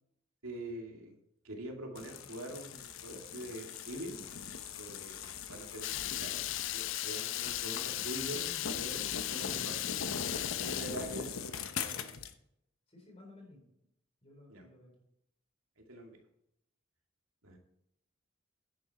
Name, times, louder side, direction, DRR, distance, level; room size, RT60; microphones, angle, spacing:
voice 1, 0.4-1.1 1.4-4.2 4.8-6.4 6.7-9.8 10.5-11.3 14.5-14.6 15.8-16.2 17.4-17.6, right 1 dB, 85° right, 1 dB, 2.5 m, -44 dB
sound 1, 1.9-12.3, left 6 dB, 80° left, 1.0 m, -41 dB
Water tap faucet / Liquid, 5.8-11.0, left 15 dB, 65° left, 0.4 m, -37 dB
voice 2, 8.3-8.7 11.7-12.2 12.9-13.6 14.2-15.0, left 2 dB, 30° left, 1 dB, 4.0 m, -55 dB
10.5 x 9.4 x 4.3 m, 0.76 s
head